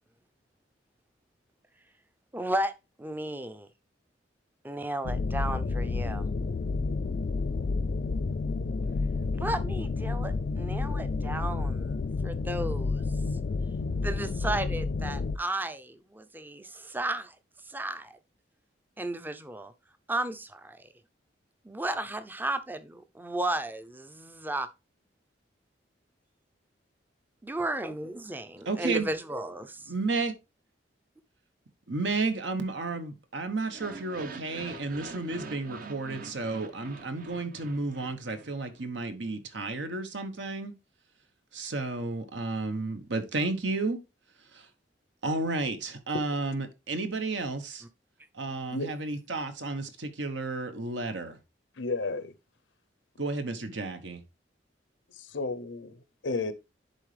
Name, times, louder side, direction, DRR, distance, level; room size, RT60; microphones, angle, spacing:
voice 1, 2.3-2.7 3.0-3.7 4.6-6.3 9.4-12.0 12.2-13.0 14.0-17.4 17.7-18.2 19.0-19.7 20.1-20.9 21.6-24.7 27.4-29.9, right 1 dB, 10° right, 0.5 m, -34 dB
sound 1, 5.0-15.4, left 3 dB, 50° left, 0.3 m, -30 dB
voice 2, 28.6-29.1 29.9-30.3 31.9-40.7 41.5-44.0 44.5-44.7 45.2-47.8 48.3-51.4 53.2-54.2, right 3 dB, 75° right, 1.1 m, -32 dB
sound 2, 33.6-38.8, right 4 dB, 50° right, 0.8 m, -45 dB
voice 3, 48.5-48.9 51.8-52.3 55.1-56.0 56.2-56.5, left 3 dB, 80° left, 0.8 m, -33 dB
10.5 x 4.0 x 3.3 m
head